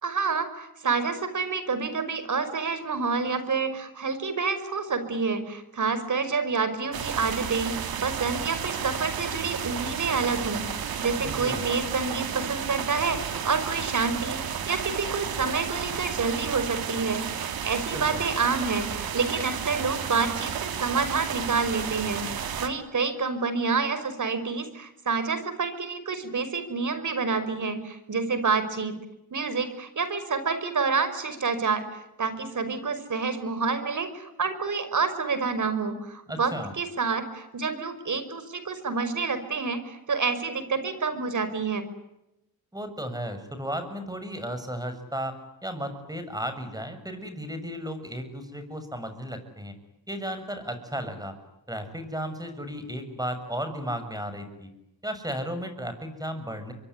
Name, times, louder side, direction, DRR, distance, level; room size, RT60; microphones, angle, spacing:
voice 1, 0.0-22.2 22.6-29.0 29.3-31.9 32.2-41.9, right 4 dB, 55° right, 11 dB, 5.4 m, -28 dB
sound 1, 6.9-22.7, right 8 dB, 80° right, 2.8 m, -32 dB
voice 2, 11.2-11.6 17.9-18.2 36.3-36.7 42.7-49.7 50.1-51.3 51.7-54.7 55.0-56.7, equal, 10° right, 9 dB, 6.8 m, -34 dB
25.5 x 23.5 x 10.0 m, 0.89 s
cardioid pair, 75°, 36 cm